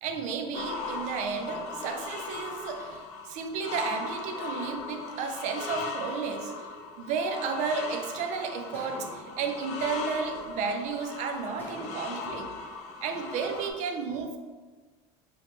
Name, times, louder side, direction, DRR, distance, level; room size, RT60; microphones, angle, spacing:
voice 1, 0.0-6.5 7.0-12.5 13.0-14.4, right 5 dB, 55° right, 5 dB, 0.4 m, -33 dB
sound 1, 0.5-13.7, left 4 dB, 50° left, 0.4 m, -38 dB
sound 2, 8.7-10.9 11.6-13.4, left 1 dB, 15° left, 0.8 m, -48 dB
2.9 x 2.1 x 2.8 m, 1.4 s
supercardioid pair, 115°, 14 cm